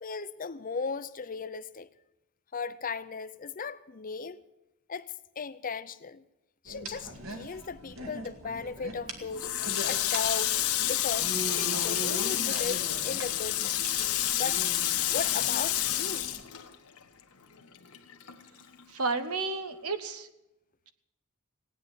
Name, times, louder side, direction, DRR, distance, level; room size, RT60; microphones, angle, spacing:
voice 1, 0.0-1.9 2.5-4.4 4.9-6.2 6.6-9.5 9.9-13.8 14.4-14.6 15.1-16.2, left 5 dB, 40° left, 0.6 m, -37 dB
sound 1, 6.6-16.4, right 1 dB, 65° right, 2.3 m, -41 dB
Water tap faucet, 9.3-17.2 17.5-18.8, left 12 dB, 90° left, 1.3 m, -29 dB
voice 2, 18.9-20.3, right 3 dB, 85° right, 1.3 m, -31 dB
17.5 x 9.6 x 7.8 m
head